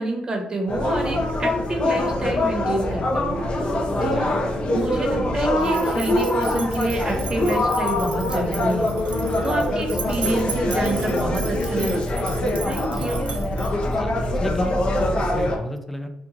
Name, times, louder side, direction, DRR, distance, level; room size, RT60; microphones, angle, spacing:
voice 1, 0.0-3.7 4.0-4.3 4.7-12.1 12.6-13.2, right 2 dB, 30° right, 1 dB, 1.0 m, -28 dB
sound 1, 0.7-15.6, left 1 dB, 45° left, 0.7 m, -23 dB
voice 2, 4.0-4.3 13.8-16.1, equal, 5° left, 6 dB, 0.4 m, -32 dB
sound 2, 5.6-14.0, right 5 dB, 60° right, 0.7 m, -36 dB
2.9 x 2.4 x 3.7 m, 0.88 s
cardioid pair, 90°, 3 cm